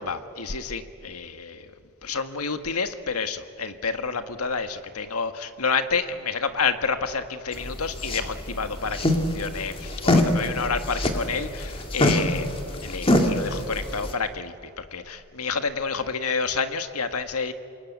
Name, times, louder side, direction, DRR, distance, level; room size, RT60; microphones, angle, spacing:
voice 1, 0.0-1.7 2.0-12.5 12.8-17.5, left 5 dB, 85° left, 8 dB, 1.6 m, -29 dB
sound 1, 7.5-14.1, left 1 dB, 25° left, 2.4 m, -25 dB
27.0 x 22.5 x 9.4 m, 2.4 s
head